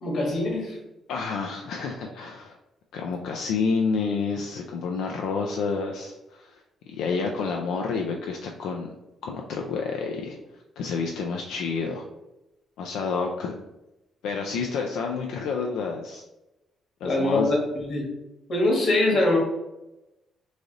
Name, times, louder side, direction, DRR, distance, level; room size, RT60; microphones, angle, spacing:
voice 1, 0.0-0.8 17.0-18.1 18.5-19.4, left 2 dB, 55° left, -1 dB, 1.4 m, -23 dB
voice 2, 1.1-2.6 2.9-6.6 6.9-8.9 9.2-12.0 12.8-13.6 14.2-16.2 17.0-17.5, left 5 dB, 85° left, 1 dB, 0.4 m, -29 dB
3.2 x 2.5 x 3.8 m, 0.95 s
cardioid pair, 90°, 0 cm